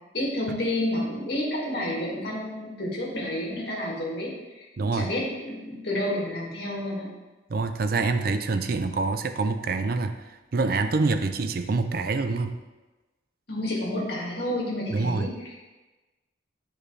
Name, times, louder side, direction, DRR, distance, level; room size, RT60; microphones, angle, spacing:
voice 1, 0.1-7.1 13.5-15.7, left 1 dB, 55° left, -4 dB, 2.1 m, -30 dB
voice 2, 4.8-5.1 7.5-10.2 10.5-12.6 14.9-15.3, right 3 dB, 50° right, 8 dB, 0.4 m, -26 dB
10.0 x 5.0 x 3.3 m, 1.2 s
head